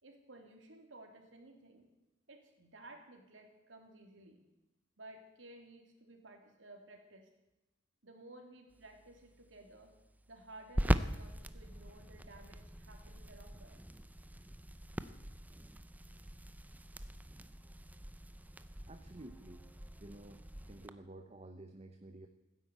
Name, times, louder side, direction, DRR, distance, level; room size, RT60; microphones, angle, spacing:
voice 1, 0.0-1.9 2.3-4.4 5.0-7.3 8.0-9.9 10.3-13.8, right 2 dB, 85° right, 3 dB, 3.1 m, -56 dB
sound 1, 8.7-20.9, right 1 dB, 10° right, 0.6 m, -41 dB
voice 2, 18.9-19.7 20.0-22.3, right 2 dB, 35° right, 7 dB, 0.9 m, -52 dB
16.0 x 10.0 x 8.3 m, 0.99 s
head